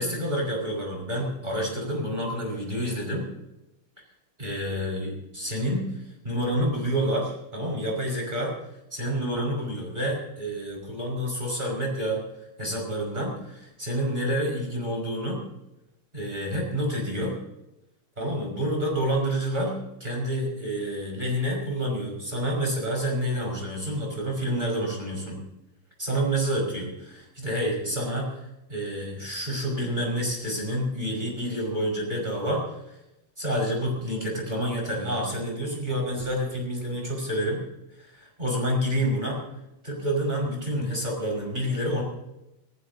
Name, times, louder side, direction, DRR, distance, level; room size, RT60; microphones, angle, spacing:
voice 1, 0.0-3.3 4.4-5.9 6.2-8.5 8.9-12.2 12.6-15.4 16.1-17.3 18.2-25.4 26.0-28.3 28.7-32.6 33.4-37.6 38.0-39.4 39.8-42.0, equal, 20° right, -1 dB, 5.4 m, -28 dB
26.0 x 15.0 x 2.8 m, 0.90 s
omnidirectional pair, 2.4 m